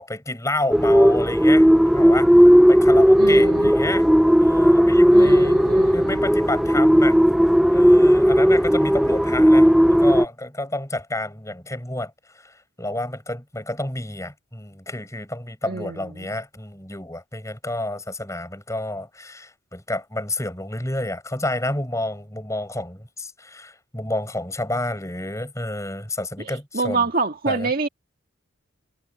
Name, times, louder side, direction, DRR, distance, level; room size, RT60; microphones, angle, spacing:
voice 1, 0.0-4.1 4.4-5.6 5.9-7.2 7.7-27.1 27.5-27.7, left 1 dB, 15° left, 7.2 m, -30 dB
sound 1, 0.7-10.3, equal, ahead, 0.5 m, -15 dB
voice 2, 3.2-3.7 5.1-6.2 15.6-16.3 26.4-27.9, right 4 dB, 45° right, 1.9 m, -27 dB
head